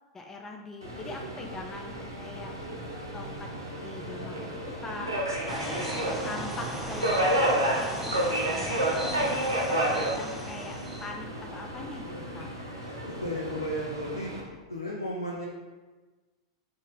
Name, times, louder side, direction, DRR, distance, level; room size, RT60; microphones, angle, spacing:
voice 1, 0.1-2.5 3.1-3.5 3.8-5.1 5.5-5.8 6.2-12.5, left 3 dB, 15° left, 2 dB, 0.3 m, -42 dB
Subway metro underground, 0.8-14.4, right 1 dB, 80° right, 0.8 m, -31 dB
sound 1, 5.5-11.1, right 1 dB, 5° right, 0.7 m, -37 dB
voice 2, 12.8-14.3 14.7-15.4, equal, 85° left, -2 dB, 0.4 m, -34 dB
4.1 x 2.4 x 3.8 m, 1.3 s
figure-of-eight pair, 90°, 2 cm